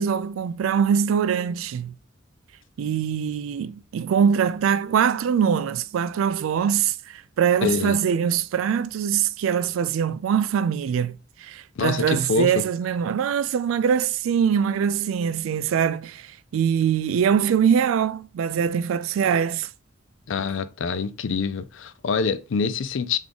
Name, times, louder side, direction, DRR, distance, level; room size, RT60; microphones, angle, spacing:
voice 1, 0.0-2.0 2.8-19.7, right 7 dB, 90° right, 0.3 m, -23 dB
voice 2, 7.6-8.0 11.8-12.6 20.3-23.2, left 5 dB, 70° left, 0.4 m, -25 dB
3.5 x 3.2 x 3.9 m
head